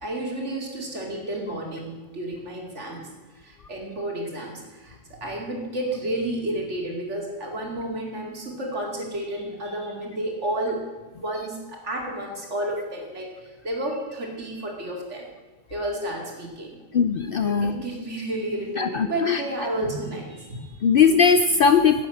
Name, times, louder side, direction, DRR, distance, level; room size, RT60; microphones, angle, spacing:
voice 1, 0.0-10.8 11.2-15.3 15.7-16.8 17.4-20.8, right 1 dB, 65° right, 0 dB, 2.8 m, -31 dB
voice 2, 16.9-17.7 18.8-19.4 20.8-22.1, left 6 dB, 60° left, 10 dB, 0.6 m, -19 dB
10.5 x 8.3 x 7.7 m, 1.2 s
omnidirectional pair, 1.3 m